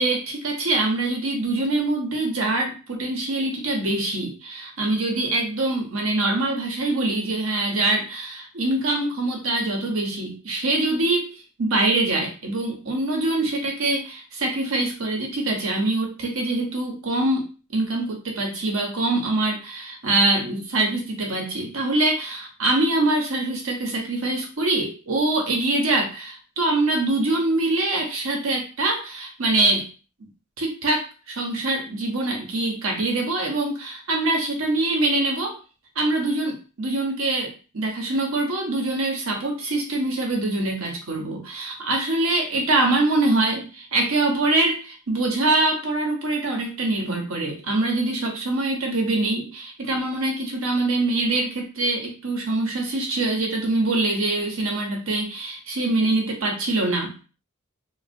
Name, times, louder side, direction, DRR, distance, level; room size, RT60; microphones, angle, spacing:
voice 1, 0.0-29.9 30.6-35.6 36.0-57.2, right 2 dB, 70° right, 1 dB, 0.9 m, -24 dB
3.2 x 2.3 x 2.6 m, 0.34 s
head